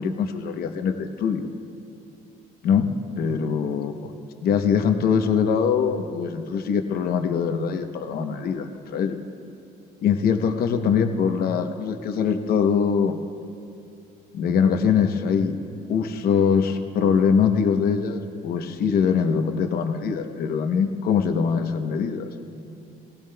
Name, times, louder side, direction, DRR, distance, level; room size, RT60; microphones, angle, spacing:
voice 1, 0.0-1.5 2.6-2.9 3.2-4.1 4.4-9.2 10.0-13.2 14.3-15.6 15.9-22.3, left 6 dB, 65° left, 6 dB, 0.9 m, -23 dB
17.5 x 17.0 x 2.3 m, 2.5 s
cardioid pair, 110°, 17 cm